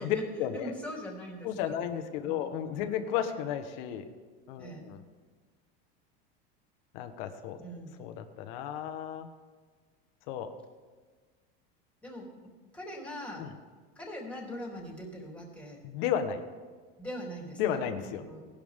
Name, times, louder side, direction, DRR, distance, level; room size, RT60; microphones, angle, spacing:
voice 1, 0.0-0.7 1.4-4.0 4.5-5.0 6.9-7.6 8.0-9.3 10.3-10.5 13.4-13.5 15.8-16.4 17.6-18.2, left 9 dB, 70° left, 7 dB, 1.4 m, -33 dB
voice 2, 0.5-1.8 2.2-2.5 2.8-3.0 4.6-4.8 7.6-7.9 12.0-13.5 13.9-15.8 17.0-17.8 18.2-18.4, equal, 5° left, -2 dB, 3.4 m, -42 dB
19.0 x 12.0 x 3.7 m, 1.5 s
supercardioid pair, 140°, 29 cm